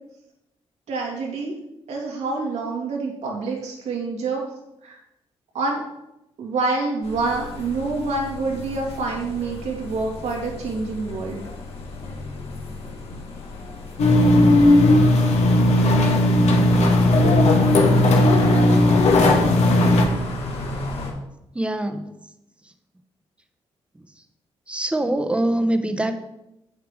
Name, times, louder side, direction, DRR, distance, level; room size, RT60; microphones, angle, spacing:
voice 1, 0.9-1.5 1.9-4.4 4.8-5.0 5.5-5.9 6.4-11.4, right 3 dB, 90° right, -1 dB, 2.7 m, -27 dB
sound 1, 7.0-21.1, left 2 dB, 65° left, 2.3 m, -34 dB
sound 2, 14.0-20.1, left 1 dB, 85° left, 1.6 m, -16 dB
voice 2, 21.5-22.1 24.7-26.1, right 1 dB, 10° right, 8 dB, 0.9 m, -23 dB
8.6 x 7.2 x 5.0 m, 0.87 s
cardioid pair, 125°, 11 cm